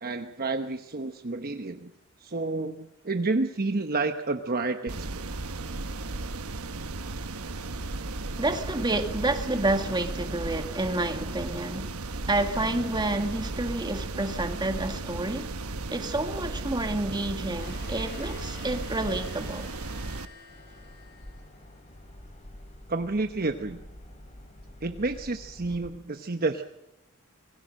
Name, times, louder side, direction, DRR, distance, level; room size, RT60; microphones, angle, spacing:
voice 1, 0.0-1.9 2.2-5.2 22.9-23.8 24.8-26.6, right 3 dB, 45° right, 1.0 m, -30 dB
sound 1, 4.9-20.2, right 2 dB, 75° right, 1.2 m, -35 dB
voice 2, 8.4-11.9 12.3-15.5 15.9-19.7, right 2 dB, 20° right, 1.9 m, -29 dB
sound 2, 17.6-21.8, left 3 dB, 50° left, 6.8 m, -48 dB
sound 3, 20.5-25.9, left 1 dB, 30° left, 3.5 m, -48 dB
26.0 x 20.5 x 6.5 m
head